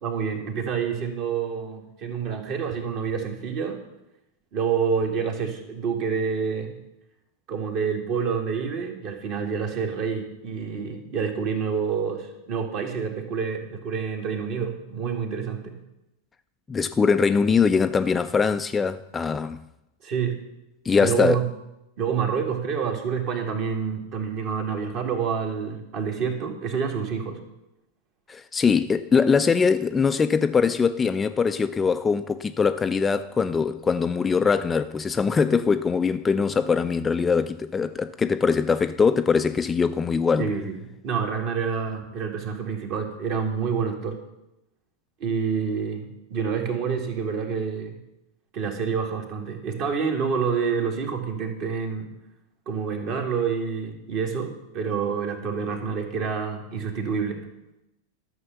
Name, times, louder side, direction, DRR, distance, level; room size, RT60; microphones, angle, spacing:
voice 1, 0.0-3.8 4.5-6.8 7.5-15.8 20.0-20.4 21.0-21.4 22.0-27.4 40.4-44.2 45.2-48.0 48.5-52.1 52.7-57.4, right 6 dB, 40° right, 2.0 m, -28 dB
voice 2, 16.7-19.6 20.8-21.4 28.3-40.5, left 5 dB, 15° left, 0.3 m, -22 dB
12.5 x 6.5 x 6.9 m
figure-of-eight pair, 90°, 0 cm